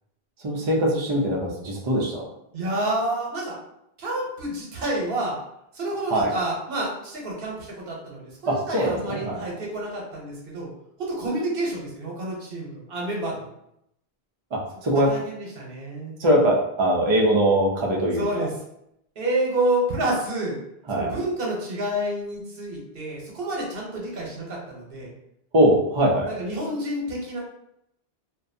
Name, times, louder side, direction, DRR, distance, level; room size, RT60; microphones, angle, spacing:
voice 1, 0.4-2.2 6.1-6.3 8.5-9.4 14.5-15.1 16.2-18.5 20.9-21.1 25.5-26.3, equal, 40° right, -1 dB, 0.4 m, -21 dB
voice 2, 2.5-3.5 4.0-5.3 5.7-10.7 11.0-13.5 14.9-16.2 18.2-18.5 19.2-20.5 20.9-25.1 26.2-27.4, right 1 dB, 65° right, -2 dB, 1.0 m, -29 dB
2.6 x 2.2 x 2.6 m, 0.78 s
omnidirectional pair, 1.0 m